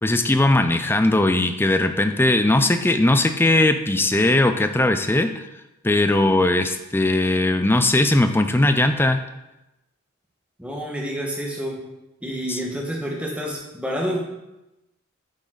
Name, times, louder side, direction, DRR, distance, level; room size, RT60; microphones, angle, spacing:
voice 1, 0.0-5.5 5.8-9.2 12.5-12.6, left 2 dB, 10° left, 8 dB, 0.5 m, -19 dB
voice 2, 10.6-11.8 12.2-14.2, equal, 5° right, -2 dB, 1.5 m, -28 dB
9.2 x 7.2 x 4.0 m, 0.95 s
head